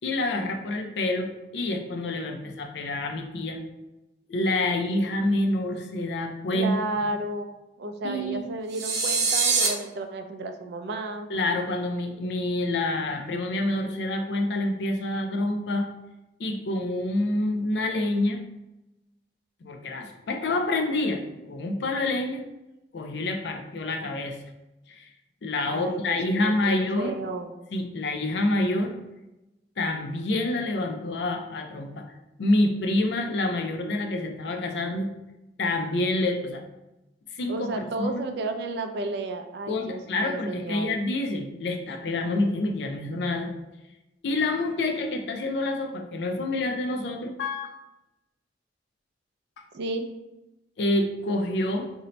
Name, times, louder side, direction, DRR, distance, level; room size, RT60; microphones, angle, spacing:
voice 1, 0.0-3.6 4.3-6.7 8.0-8.5 11.3-15.9 16.4-18.4 19.6-21.2 21.5-22.4 22.9-24.4 24.9-25.1 25.4-27.2 27.7-28.9 29.8-32.0 32.4-35.1 35.6-36.6 37.3-38.2 39.7-43.5 44.2-47.8 50.8-51.9, left 2 dB, 70° left, 4 dB, 0.4 m, -27 dB
voice 2, 6.5-11.3 25.7-27.5 37.5-40.9 49.7-50.1, right 2 dB, 65° right, 6 dB, 0.4 m, -32 dB
sound 1, 8.7-9.7, right 4 dB, 80° right, 0.7 m, -23 dB
2.6 x 2.1 x 4.0 m, 0.96 s
head